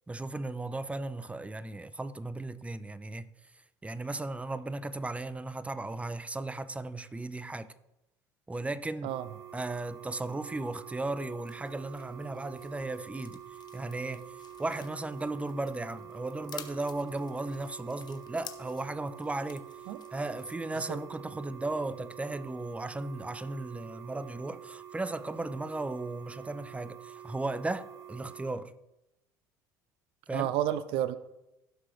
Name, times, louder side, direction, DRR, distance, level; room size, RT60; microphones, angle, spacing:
voice 1, 0.1-3.3 3.8-7.7 8.5-9.2 9.5-13.4 13.7-19.7 20.1-28.7 30.3-30.5, right 2 dB, 10° right, 0.7 m, -36 dB
sound 1, 9.1-28.5, right 10 dB, 40° right, 3.9 m, -48 dB
sound 2, 11.4-20.5, left 8 dB, 45° left, 1.1 m, -52 dB
voice 2, 30.3-31.2, right 12 dB, 65° right, 0.5 m, -30 dB
16.5 x 6.1 x 3.2 m
hypercardioid pair, 70°, 10 cm